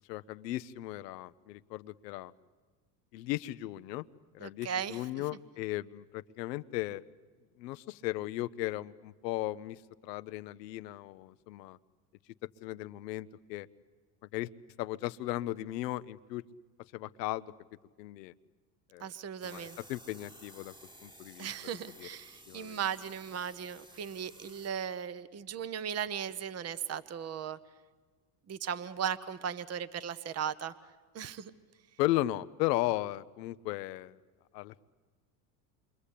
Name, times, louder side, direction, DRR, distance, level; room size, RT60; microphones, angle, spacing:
voice 1, 0.1-2.3 3.1-4.0 4.3-7.0 7.6-11.8 12.6-13.7 14.3-14.5 14.8-16.4 16.9-17.5 18.0-18.3 18.9-19.1 19.4-20.7 21.0-21.5 22.0-22.1 22.5-22.8 32.0-34.2 34.5-34.8, left 16 dB, 80° left, 15 dB, 0.8 m, -36 dB
voice 2, 4.4-5.0 19.0-19.8 21.4-27.6 28.5-30.7 31.1-31.5, right 8 dB, 30° right, 15 dB, 1.1 m, -37 dB
sound 1, 19.4-24.7, right 1 dB, 10° right, 1.6 m, -54 dB
27.5 x 23.5 x 8.4 m, 1.4 s
supercardioid pair, 90°, 48 cm